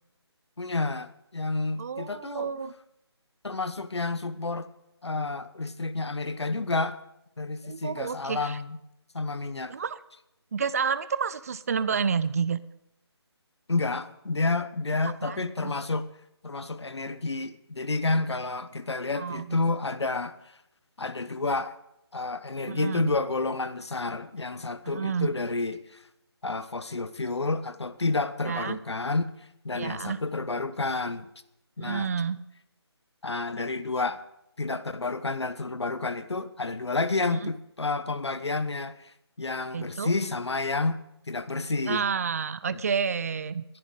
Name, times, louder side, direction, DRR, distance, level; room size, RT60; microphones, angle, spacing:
voice 1, 0.6-2.5 3.4-4.7 5.0-7.0 7.4-8.8 9.1-9.7 13.7-16.1 16.4-20.3 21.0-21.7 22.1-26.0 26.4-31.3 31.8-32.1 33.2-34.2 34.6-39.1 39.4-42.0 42.7-42.8, left 3 dB, 75° left, 1.1 m, -30 dB
voice 2, 1.8-2.7 7.7-8.6 9.7-10.0 10.5-12.6 15.2-15.7 19.2-19.5 22.7-23.1 24.9-25.3 28.5-28.8 29.7-30.2 31.8-32.4 37.3-37.4 39.7-40.1 41.9-43.6, right 6 dB, 35° right, 0.5 m, -30 dB
22.0 x 11.0 x 3.8 m
figure-of-eight pair, 155°, 14 cm